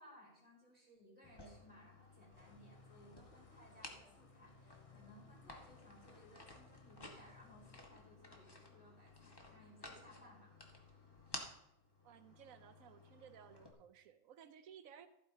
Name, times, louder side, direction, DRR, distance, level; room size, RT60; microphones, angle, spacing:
voice 1, 0.0-10.5, equal, 5° right, -4 dB, 4.3 m, -62 dB
sound 1, 1.2-13.7, left 2 dB, 20° left, 1.3 m, -56 dB
sound 2, 2.3-7.8, left 2 dB, 40° left, 0.5 m, -64 dB
voice 2, 12.0-15.1, right 8 dB, 80° right, 10 dB, 1.2 m, -58 dB
15.0 x 8.8 x 2.8 m, 0.83 s
omnidirectional pair, 1.4 m